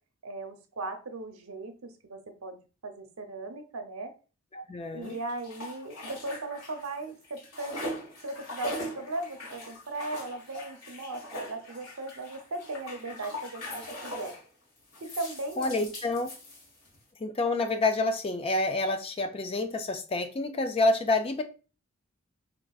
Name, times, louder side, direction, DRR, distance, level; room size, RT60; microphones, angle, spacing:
voice 1, 0.2-2.6 2.8-4.1 4.9-7.9 8.2-14.3 15.0-15.9, right 2 dB, 85° right, 5 dB, 0.7 m, -38 dB
voice 2, 4.5-5.2 15.6-16.3 17.2-21.4, left 2 dB, 25° left, 7 dB, 0.4 m, -28 dB
sound 1, 5.0-7.0 7.2-14.5 14.9-17.0, equal, 70° left, 1.3 m, -41 dB
4.5 x 2.5 x 2.3 m, 0.34 s
head